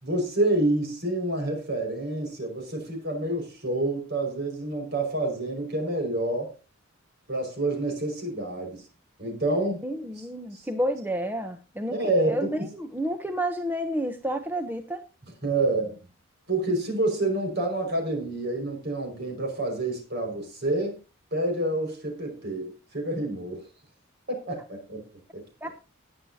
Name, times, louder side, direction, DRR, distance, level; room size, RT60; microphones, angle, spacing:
voice 1, 0.0-6.5 7.3-8.8 9.2-9.8 10.2-10.3 10.5-10.7 11.9-12.7 15.4-16.0 16.5-21.0 21.3-23.6 24.3-25.0 25.3-25.7, right 2 dB, 55° right, 3 dB, 5.4 m, -28 dB
voice 2, 9.8-12.0 12.2-15.0 25.6-25.7, equal, 10° right, 6 dB, 0.7 m, -30 dB
19.0 x 8.7 x 2.8 m, 0.32 s
head